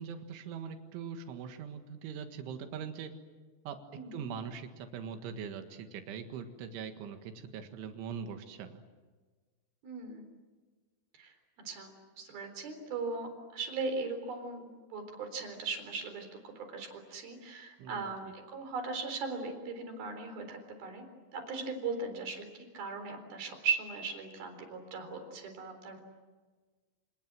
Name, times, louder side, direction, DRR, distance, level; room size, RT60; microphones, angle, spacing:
voice 1, 0.0-3.1 3.7-3.8 4.1-8.8 17.8-18.1, right 7 dB, 85° right, 6 dB, 4.2 m, -42 dB
voice 2, 3.9-4.3 9.8-10.3 11.2-11.3 11.7-21.1 21.3-26.0, right 4 dB, 55° right, 6 dB, 5.6 m, -38 dB
28.0 x 28.0 x 7.6 m, 1.4 s
omnidirectional pair, 5.3 m